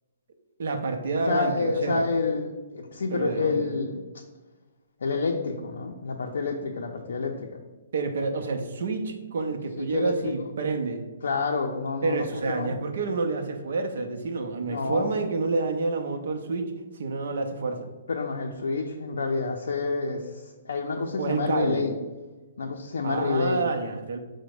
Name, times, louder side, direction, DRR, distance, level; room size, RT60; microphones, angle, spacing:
voice 1, 0.6-2.0 3.1-3.7 7.9-11.0 12.0-17.9 21.2-21.9 23.0-24.2, right 3 dB, 55° right, 5 dB, 0.5 m, -28 dB
voice 2, 1.3-4.0 5.0-7.6 9.8-10.3 11.2-12.7 14.6-15.1 18.1-21.9 22.6-23.7, left 4 dB, 80° left, 1 dB, 0.4 m, -28 dB
5.1 x 2.1 x 4.7 m, 1.2 s
hypercardioid pair, 180°, 0 cm